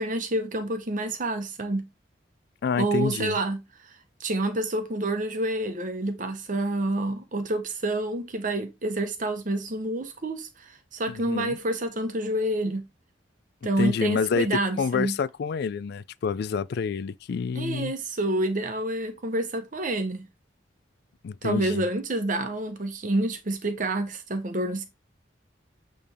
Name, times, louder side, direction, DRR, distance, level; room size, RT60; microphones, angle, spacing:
voice 1, 0.0-1.8 2.8-3.6 3.9-12.8 13.6-15.1 17.5-20.3 21.4-24.8, right 1 dB, 45° right, 1.0 m, -28 dB
voice 2, 2.6-3.4 11.1-11.6 13.8-17.9 21.2-21.8, left 6 dB, 60° left, 0.3 m, -28 dB
8.8 x 3.3 x 3.5 m
head